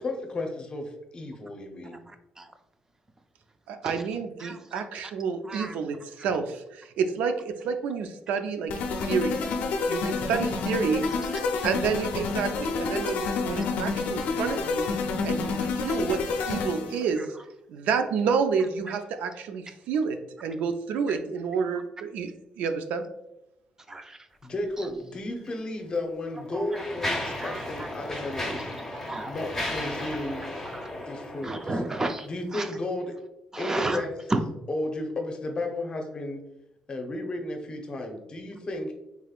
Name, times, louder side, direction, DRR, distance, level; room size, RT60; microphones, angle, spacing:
voice 1, 0.0-2.0 24.4-28.6 29.2-30.4 30.9-31.5 32.3-33.1 33.6-34.1 34.7-36.4 36.9-38.9, left 2 dB, 40° left, 3 dB, 0.7 m, -33 dB
voice 2, 1.9-2.5 3.8-4.0 4.4-4.8 5.4-5.8 11.3-11.4 13.0-13.2 14.5-14.6 17.2-17.3 21.1-21.2 23.9-24.2 24.8-24.9 26.5-27.9 29.1-29.3 30.7-30.9 31.4-32.8 33.5-34.4, right 2 dB, 20° right, 6 dB, 0.4 m, -33 dB
voice 3, 3.7-8.7 9.1-9.4 9.9-11.0 11.6-14.8 15.2-17.3 17.7-19.6 19.9-23.0, right 6 dB, 90° right, 8 dB, 0.4 m, -29 dB
sound 1, 8.7-17.0, left 4 dB, 80° left, 0.5 m, -29 dB
Mechanisms, 25.4-25.5 26.2-32.0, left 1 dB, 10° left, 1.3 m, -35 dB
3.5 x 3.4 x 2.3 m, 0.88 s
cardioid pair, 100°, 3 cm